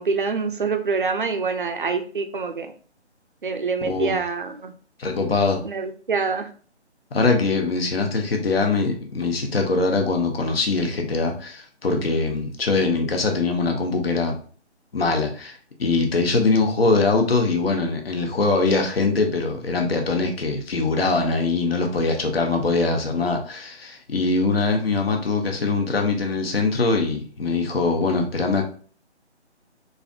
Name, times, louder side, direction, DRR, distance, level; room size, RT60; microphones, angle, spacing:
voice 1, 0.0-2.7 3.4-4.7 5.6-6.5, right 4 dB, 50° right, 6 dB, 0.4 m, -25 dB
voice 2, 3.8-4.2 5.0-5.6 7.1-14.4 14.9-28.6, left 3 dB, 55° left, 3 dB, 0.8 m, -22 dB
3.2 x 2.5 x 2.4 m, 0.42 s
figure-of-eight pair, 160°, 35 cm